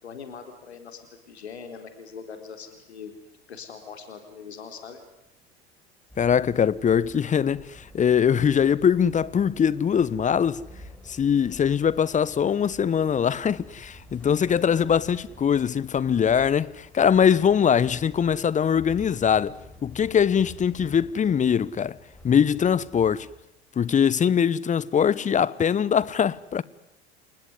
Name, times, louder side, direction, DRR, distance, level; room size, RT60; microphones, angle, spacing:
voice 1, 0.0-1.0 1.3-3.1 3.5-5.0 15.1-15.2, left 6 dB, 75° left, 3.9 m, -41 dB
sound 1, 6.1-23.4, left 1 dB, 5° left, 7.6 m, -48 dB
voice 2, 6.2-10.6 11.1-19.5 19.8-22.0 22.2-23.3 23.8-26.6, left 8 dB, 25° left, 1.1 m, -22 dB
29.5 x 19.5 x 9.8 m
figure-of-eight pair, 75°, 32 cm